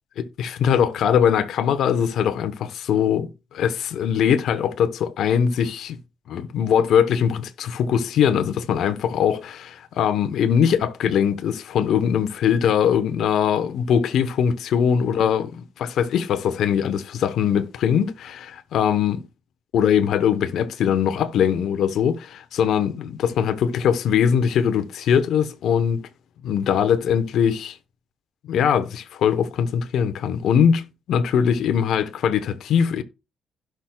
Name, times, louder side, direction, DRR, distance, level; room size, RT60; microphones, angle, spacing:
voice 1, 0.2-6.0 6.3-19.2 19.7-26.1 26.4-27.8 28.5-33.0, left 8 dB, 75° left, 1.0 m, -21 dB
16.5 x 6.1 x 2.4 m
cardioid pair, 90°, 0 cm